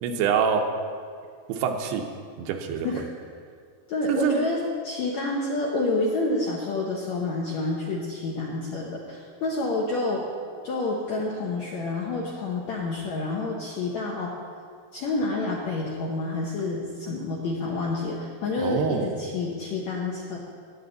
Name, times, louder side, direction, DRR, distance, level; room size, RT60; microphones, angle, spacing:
voice 1, 0.0-0.7 1.5-2.1 2.4-2.9 4.1-4.5 18.6-19.1, right 7 dB, 85° right, 4 dB, 3.0 m, -25 dB
voice 2, 3.9-10.3 10.6-14.4 14.9-20.4, left 2 dB, 75° left, -3 dB, 1.7 m, -28 dB
19.5 x 8.6 x 4.0 m, 2.1 s
omnidirectional pair, 4.6 m